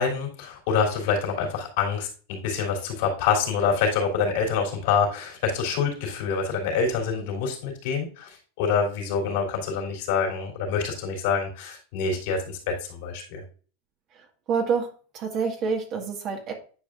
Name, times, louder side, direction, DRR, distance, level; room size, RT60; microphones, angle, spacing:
voice 1, 0.0-13.4, left 5 dB, 65° left, 1 dB, 3.0 m, -26 dB
voice 2, 14.1-16.5, right 5 dB, 45° right, 2 dB, 1.7 m, -28 dB
9.7 x 5.2 x 2.5 m, 0.39 s
hypercardioid pair, 110°, 0 cm